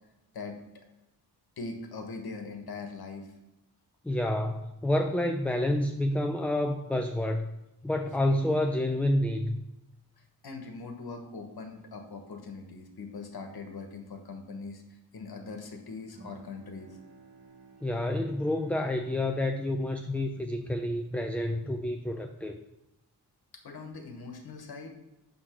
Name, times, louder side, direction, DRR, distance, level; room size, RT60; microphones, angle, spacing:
voice 1, 1.6-3.3 10.4-14.8 15.1-16.9 23.6-24.9, left 4 dB, 70° left, 5 dB, 1.2 m, -41 dB
voice 2, 4.0-7.5 7.8-9.6 17.8-22.6, left 1 dB, 5° left, 5 dB, 0.3 m, -29 dB
Bowed string instrument, 16.1-21.5, right 3 dB, 85° right, 2.0 m, -56 dB
7.9 x 3.8 x 6.0 m, 0.92 s
wide cardioid pair, 130°, 39 cm